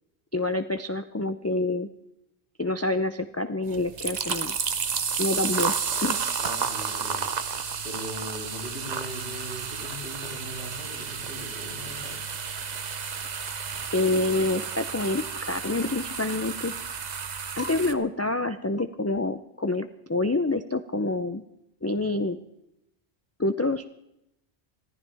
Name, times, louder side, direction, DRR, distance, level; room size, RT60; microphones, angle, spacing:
voice 1, 0.3-1.9 2.6-4.6 5.2-5.7 6.0-6.2 13.9-16.7 17.5-21.4 21.8-22.4 23.4-23.8, left 2 dB, 20° left, 9 dB, 0.4 m, -27 dB
sound 1, 3.7-17.9, right 6 dB, 45° right, 0.8 m, -32 dB
voice 2, 6.4-7.3 7.8-12.2, equal, 50° left, 0 dB, 3.6 m, -39 dB
25.5 x 14.5 x 3.5 m, 0.84 s
omnidirectional pair, 1.1 m